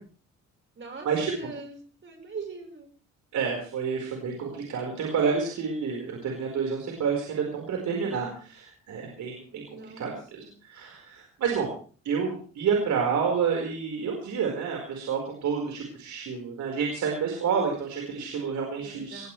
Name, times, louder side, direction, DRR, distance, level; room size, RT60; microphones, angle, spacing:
voice 1, 0.8-2.9 8.0-8.4 9.7-10.5 18.8-19.3, right 4 dB, 40° right, 4 dB, 5.1 m, -42 dB
voice 2, 3.3-9.6 10.0-11.7 12.0-19.3, right 6 dB, 70° right, 0 dB, 4.9 m, -29 dB
20.5 x 17.0 x 3.4 m, 0.41 s
cardioid pair, 90°, 30 cm